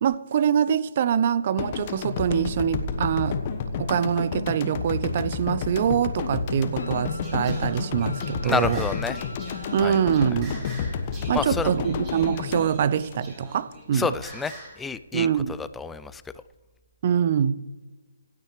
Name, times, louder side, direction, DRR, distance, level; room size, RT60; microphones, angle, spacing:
voice 1, 0.0-3.4 3.8-8.8 9.7-10.6 11.3-14.1 15.1-15.6 17.0-17.6, right 8 dB, 40° right, 0.6 m, -24 dB
sound 1, 1.6-13.8, left 6 dB, 30° left, 1.2 m, -31 dB
Wind instrument woodwind instrument, 6.8-10.0, left 2 dB, 75° left, 1.1 m, -43 dB
Singing, 7.2-14.8, right 2 dB, 20° right, 4.0 m, -44 dB
voice 2, 8.4-9.2 9.8-9.9 11.3-11.7 13.9-15.3 15.6-16.2, left 5 dB, 5° left, 0.4 m, -29 dB
25.5 x 9.4 x 3.2 m
figure-of-eight pair, 140°, 0 cm